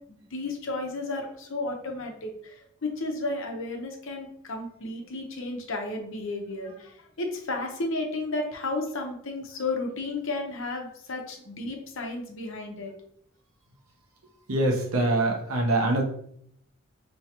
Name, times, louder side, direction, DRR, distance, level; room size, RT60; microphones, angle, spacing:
voice 1, 0.1-12.9, left 2 dB, 65° left, 2 dB, 0.9 m, -33 dB
voice 2, 14.5-16.0, right 2 dB, 80° right, 1 dB, 0.9 m, -24 dB
4.6 x 3.0 x 2.9 m, 0.68 s
head